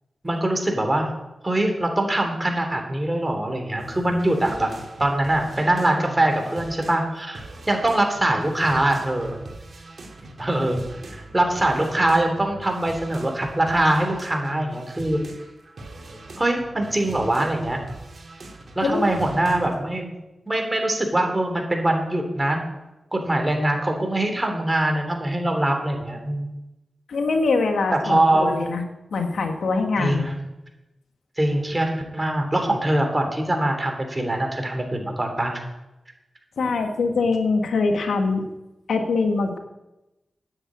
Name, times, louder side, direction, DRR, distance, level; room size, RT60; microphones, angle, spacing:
voice 1, 0.2-1.1 1.4-4.7 5.0-7.4 7.7-9.4 10.4-10.8 11.3-15.2 16.4-17.8 18.7-20.1 20.5-22.6 23.1-26.5 28.0-28.6 30.0-30.4 31.4-35.6, right 1 dB, 25° right, 3 dB, 3.2 m, -23 dB
sound 1, 3.8-19.8, right 2 dB, 65° right, 2.4 m, -41 dB
voice 2, 27.1-28.8 29.1-30.3 36.6-38.4 38.9-39.6, left 3 dB, 85° left, 5 dB, 1.6 m, -23 dB
9.9 x 8.0 x 8.5 m, 0.99 s
cardioid pair, 55°, 0 cm